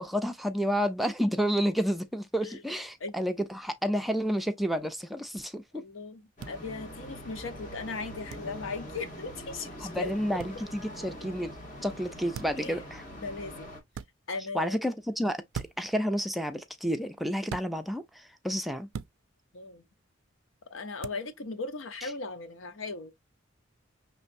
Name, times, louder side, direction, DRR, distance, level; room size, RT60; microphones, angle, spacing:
voice 1, 0.0-5.8 9.8-11.5 11.8-13.0 14.5-18.9 22.0-22.1, equal, ahead, 0.5 m, -30 dB
voice 2, 5.7-10.1 12.6-12.8 13.2-13.7 14.3-14.8 19.5-19.8 20.7-23.1, left 3 dB, 85° left, 0.8 m, -38 dB
sound 1, 6.4-13.8, equal, 40° left, 1.9 m, -43 dB
sound 2, 6.4-6.5 8.3-8.5 10.4-10.6 12.3-12.7 13.9-14.1 15.5-15.9 17.5-17.7 18.9-19.2 21.0-21.2, right 7 dB, 85° right, 0.4 m, -39 dB
5.5 x 3.2 x 2.5 m
head